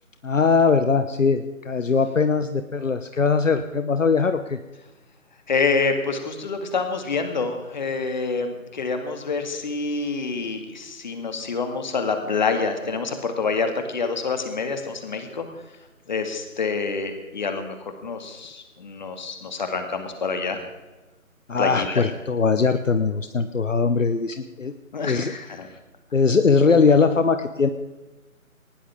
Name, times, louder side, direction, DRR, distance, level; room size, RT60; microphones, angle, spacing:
voice 1, 0.2-4.6 21.5-24.7 25.0-25.3 26.1-27.7, left 5 dB, 60° left, 9 dB, 1.1 m, -20 dB
voice 2, 5.5-15.5 16.1-17.8 18.0-20.6 21.6-22.0 24.9-25.7, left 4 dB, 30° left, 6 dB, 2.1 m, -27 dB
19.5 x 18.5 x 3.7 m, 1.2 s
figure-of-eight pair, 155°, 42 cm